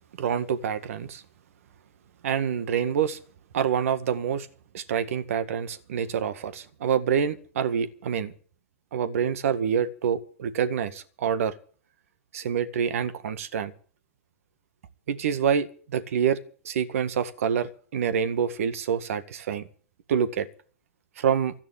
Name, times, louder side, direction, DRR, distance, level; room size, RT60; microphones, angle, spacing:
voice 1, 0.2-1.2 2.2-3.2 3.5-4.5 4.7-8.3 8.9-11.5 12.3-13.7 15.1-16.4 16.6-19.7 20.1-20.5 21.2-21.5, right 8 dB, 70° right, 13 dB, 1.7 m, -26 dB
13.5 x 10.5 x 8.8 m, 0.44 s
hypercardioid pair, 110°, 8 cm